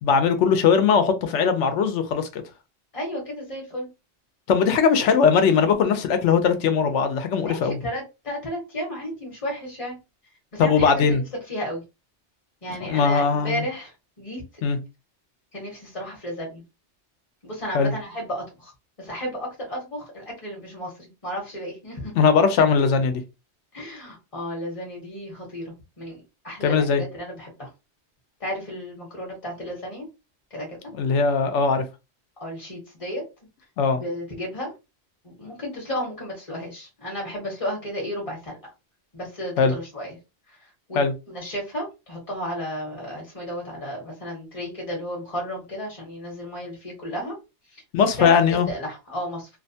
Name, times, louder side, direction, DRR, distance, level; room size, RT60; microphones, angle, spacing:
voice 1, 0.0-2.4 4.5-7.8 10.6-11.2 12.8-13.7 14.6-14.8 17.7-17.9 22.2-23.2 26.6-27.0 31.0-31.8 33.8-34.0 39.6-39.7 40.9-41.1 47.9-48.7, left 6 dB, 85° left, 0.9 m, -20 dB
voice 2, 2.9-3.9 7.4-10.0 10.5-11.8 12.6-14.4 15.5-16.6 17.4-18.7 19.0-22.1 23.7-27.7 28.4-30.1 30.5-30.8 32.4-33.2 34.0-34.7 35.2-38.6 39.1-40.2 40.5-41.0 41.3-47.3 47.7-47.8 48.2-49.5, equal, 30° left, 0.9 m, -33 dB
2.6 x 2.2 x 2.6 m
omnidirectional pair, 1.2 m